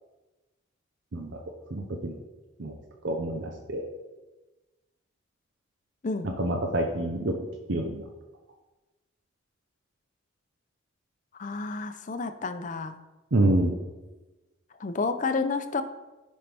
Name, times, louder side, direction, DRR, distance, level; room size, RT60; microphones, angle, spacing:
voice 1, 1.7-2.2 2.6-2.7 3.0-3.9 6.2-7.3 7.7-8.0 13.3-13.7, right 1 dB, 65° right, 3 dB, 0.7 m, -27 dB
voice 2, 11.4-13.0 14.8-15.8, left 4 dB, 40° left, 9 dB, 0.5 m, -30 dB
10.0 x 5.3 x 3.4 m, 1.1 s
head